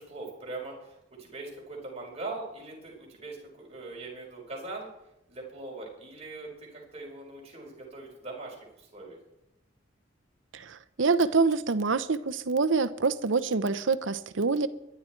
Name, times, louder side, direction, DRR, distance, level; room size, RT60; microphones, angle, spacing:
voice 1, 0.0-4.9 5.3-9.2, right 2 dB, 35° right, 5.2 m, -41 dB
voice 2, 10.5-14.7, right 4 dB, 80° right, 0.8 m, -26 dB
23.0 x 11.0 x 4.5 m
head